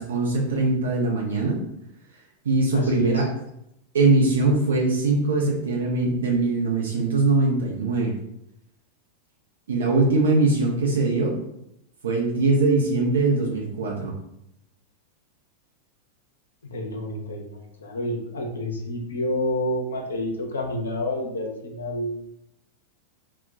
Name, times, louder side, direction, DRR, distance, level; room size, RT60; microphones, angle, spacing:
voice 1, 0.0-1.6 2.4-3.3 3.9-8.1 9.7-11.4 12.0-14.1, right 3 dB, 65° right, -2 dB, 0.5 m, -21 dB
voice 2, 2.7-3.2 16.7-22.3, left 1 dB, 70° left, 2 dB, 0.6 m, -29 dB
2.1 x 2.1 x 3.7 m, 0.79 s
figure-of-eight pair, 90°, 0 cm